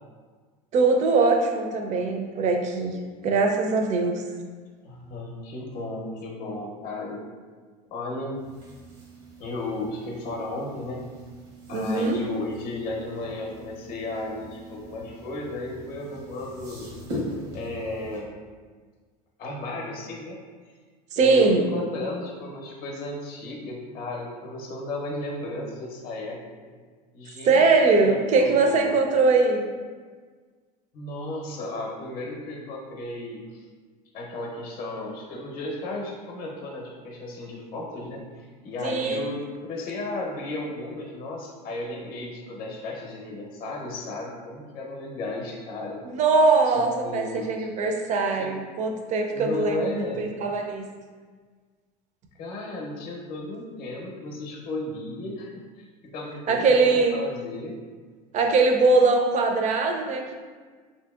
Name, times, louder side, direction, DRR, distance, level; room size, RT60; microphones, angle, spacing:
voice 1, 0.7-3.0 3.2-4.2 11.7-12.2 21.1-21.6 27.4-29.6 38.8-39.3 46.0-50.9 56.5-57.1 58.3-60.3, right 3 dB, 35° right, 3 dB, 0.4 m, -21 dB
voice 2, 4.8-7.2 7.9-8.4 9.4-11.0 11.7-16.9 17.5-18.4 19.4-20.4 21.2-26.4 27.1-27.7 28.0-29.2 30.9-33.6 34.1-46.0 46.6-47.7 48.4-48.5 49.3-50.3 52.4-55.5 55.8-57.7, left 2 dB, 50° left, -1 dB, 0.7 m, -34 dB
sound 1, 8.3-18.2, equal, 85° right, 1.1 m, -41 dB
2.9 x 2.8 x 2.3 m, 1.5 s
supercardioid pair, 95°, 20 cm